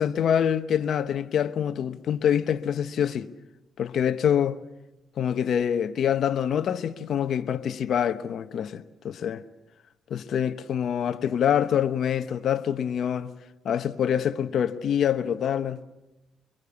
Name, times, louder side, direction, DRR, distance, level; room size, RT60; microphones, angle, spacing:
voice 1, 0.0-3.3 3.8-4.6 5.2-9.4 10.1-13.3 13.6-15.8, left 9 dB, 65° left, 1.0 m, -25 dB
24.5 x 23.0 x 7.1 m
cardioid pair, 90°, 0 cm